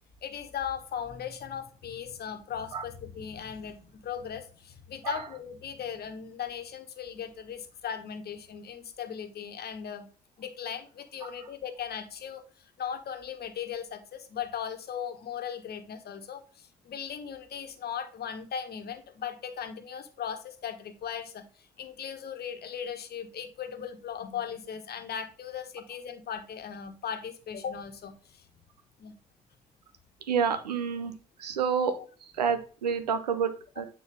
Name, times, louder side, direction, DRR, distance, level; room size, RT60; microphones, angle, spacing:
voice 1, 0.2-10.1 10.4-21.4 21.8-28.4 29.0-29.1, left 8 dB, 55° left, 7 dB, 1.3 m, -38 dB
voice 2, 30.3-31.1 31.4-31.9 32.3-33.9, right 6 dB, 90° right, 11 dB, 0.6 m, -28 dB
9.2 x 4.1 x 3.6 m, 0.38 s
hypercardioid pair, 45°, 20 cm